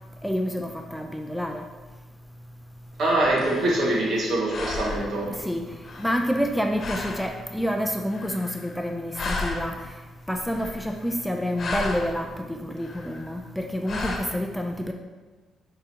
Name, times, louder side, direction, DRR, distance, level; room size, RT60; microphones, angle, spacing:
voice 1, 0.2-1.6 5.3-5.7 6.0-9.9 10.3-14.9, equal, ahead, 3 dB, 0.4 m, -28 dB
sound 1, 3.0-4.2 4.5-5.3 5.8-6.5 6.8-7.3 8.1-8.9 9.1-9.9 10.4-11.1 11.4-12.2 12.8-13.3 13.9-14.2, left 3 dB, 50° left, 1.0 m, -34 dB
voice 2, 3.0-5.3, right 1 dB, 65° right, -3 dB, 1.7 m, -24 dB
9.2 x 3.8 x 2.8 m, 1.3 s
cardioid pair, 90°, 0 cm